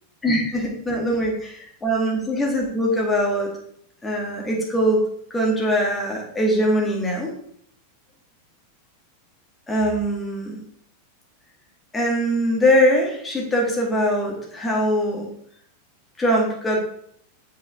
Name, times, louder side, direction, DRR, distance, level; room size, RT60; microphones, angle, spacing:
voice 1, 0.2-3.5 4.0-5.0 5.3-7.3 9.7-10.6 11.9-15.3 16.2-16.9, equal, 15° left, -1 dB, 1.8 m, -22 dB
7.5 x 5.6 x 3.6 m, 0.68 s
figure-of-eight pair, 90°, 0 cm